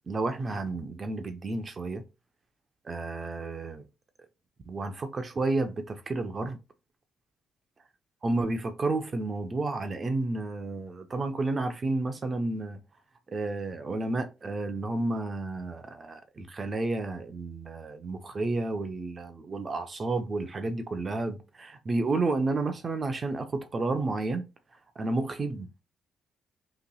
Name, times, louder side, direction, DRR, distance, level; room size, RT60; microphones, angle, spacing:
voice 1, 0.1-2.0 2.9-3.8 4.7-6.6 8.2-12.8 13.3-24.4 25.0-25.7, right 2 dB, 35° right, 0.7 m, -31 dB
5.5 x 3.1 x 2.3 m
cardioid pair, 90°, 0 cm